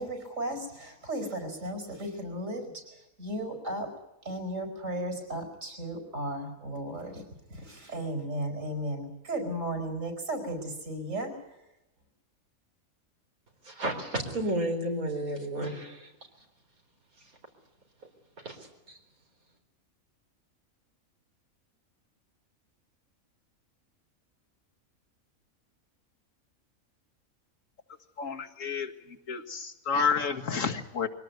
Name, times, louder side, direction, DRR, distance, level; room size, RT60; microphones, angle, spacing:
voice 1, 0.0-2.8 3.2-3.9 4.2-7.2 7.5-11.3, right 1 dB, 65° right, 5.6 m, -35 dB
voice 2, 13.6-16.1 18.4-18.6 18.9-19.0, right 1 dB, 90° right, 4.5 m, -32 dB
voice 3, 28.2-28.9 29.3-31.1, left 5 dB, 65° left, 2.0 m, -30 dB
22.5 x 18.0 x 9.4 m
omnidirectional pair, 1.5 m